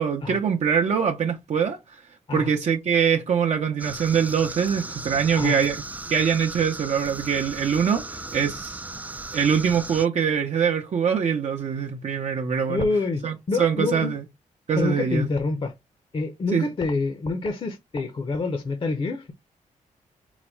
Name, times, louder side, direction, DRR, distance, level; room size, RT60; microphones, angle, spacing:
voice 1, 0.0-2.0 2.3-5.8 6.1-8.8 9.3-12.9 13.2-14.2 14.7-15.3 16.5-16.7, right 7 dB, 55° right, 0.7 m, -23 dB
sound 1, 3.8-10.1, right 2 dB, 10° right, 0.3 m, -36 dB
voice 2, 12.7-14.2 14.8-15.7 16.1-19.3, left 3 dB, 40° left, 0.7 m, -27 dB
4.0 x 2.1 x 4.5 m
cardioid pair, 80°, 14 cm